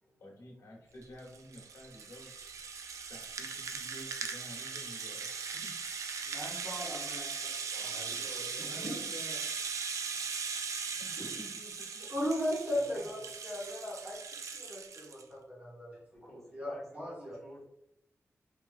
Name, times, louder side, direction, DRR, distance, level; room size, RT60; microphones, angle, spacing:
voice 1, 0.2-2.3 3.1-5.7 8.6-9.5 11.0-12.1 12.7-13.1, left 1 dB, 80° left, -2 dB, 1.1 m, -51 dB
Rattle (instrument), 1.0-15.2, right 5 dB, 75° right, 0.3 m, -39 dB
voice 2, 6.3-7.5 7.8-8.1 8.3-8.9 12.1-14.2 14.5-16.0 16.5-17.3, equal, 30° right, -6 dB, 1.4 m, -37 dB
voice 3, 7.5-9.0 16.1-17.6, equal, 5° left, -6 dB, 1.4 m, -52 dB
3.2 x 3.1 x 2.4 m, 0.79 s
wide cardioid pair, 115°, 5 cm